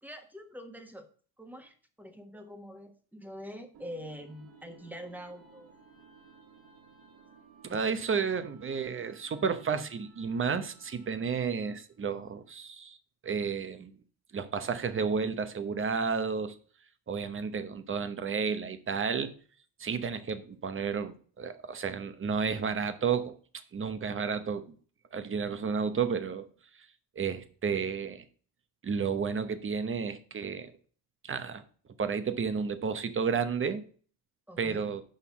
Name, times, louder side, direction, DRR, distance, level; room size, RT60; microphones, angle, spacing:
voice 1, 0.0-1.1 1.4-5.7 34.5-34.9, equal, 5° right, 1.3 m, -45 dB
sound 1, 3.7-11.9, right 5 dB, 55° right, 2.1 m, -58 dB
voice 2, 7.7-13.0 13.2-13.9 14.3-16.5 17.1-19.3 19.8-23.3 23.7-24.7 25.1-26.5 27.2-28.2 28.8-30.7 31.2-31.6 32.0-33.8 34.6-35.0, right 6 dB, 30° right, 0.9 m, -32 dB
6.6 x 5.6 x 6.9 m
cardioid pair, 125°, 44 cm